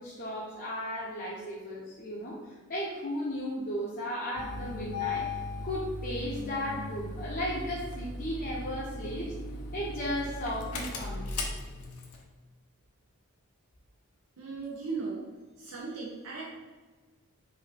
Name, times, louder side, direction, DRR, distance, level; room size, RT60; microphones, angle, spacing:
voice 1, 0.0-9.3 9.7-11.3, equal, 40° left, -6 dB, 0.7 m, -35 dB
Engine starting, 4.3-12.2, left 2 dB, 85° left, 0.7 m, -37 dB
voice 2, 14.4-15.3 15.6-16.5, right 4 dB, 85° right, -5 dB, 0.9 m, -37 dB
5.6 x 2.8 x 3.4 m, 1.3 s
head